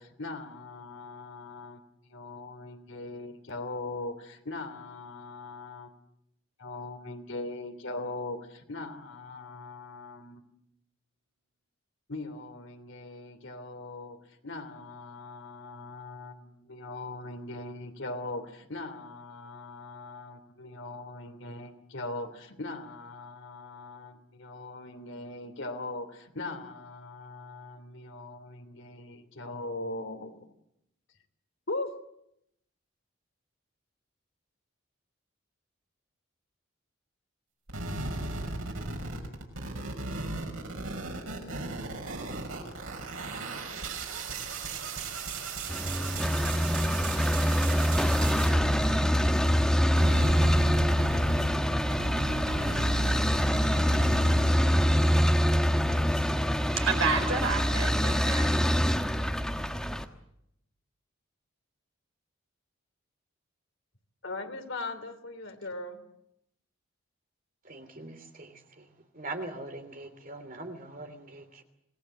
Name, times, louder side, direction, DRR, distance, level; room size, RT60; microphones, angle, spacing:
voice 1, 0.0-6.0 6.6-10.4 12.1-30.5 31.7-31.9 64.2-66.0, left 2 dB, 65° left, 3.0 m, -40 dB
sound 1, 37.7-49.6 49.9-54.5, right 3 dB, 90° right, 5.8 m, -36 dB
sound 2, 45.7-60.0, equal, 5° left, 1.2 m, -25 dB
voice 2, 56.1-58.7, right 4 dB, 70° right, 4.6 m, -31 dB
voice 3, 67.6-68.8 69.1-71.6, right 2 dB, 40° right, 3.0 m, -42 dB
26.5 x 19.0 x 7.9 m
head